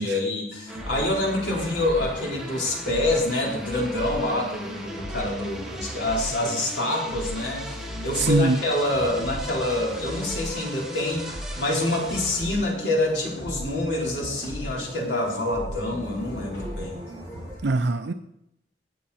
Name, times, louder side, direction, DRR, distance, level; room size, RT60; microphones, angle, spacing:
voice 1, 0.0-17.0, left 1 dB, 80° left, -2 dB, 4.1 m, -26 dB
sound 1, 0.7-17.6, equal, 65° left, 4.9 m, -39 dB
sound 2, 0.7-17.5, equal, 5° right, 1.6 m, -39 dB
voice 2, 8.1-8.6 17.6-18.1, right 3 dB, 70° right, 9 dB, 0.6 m, -22 dB
20.0 x 7.5 x 4.3 m, 0.80 s
head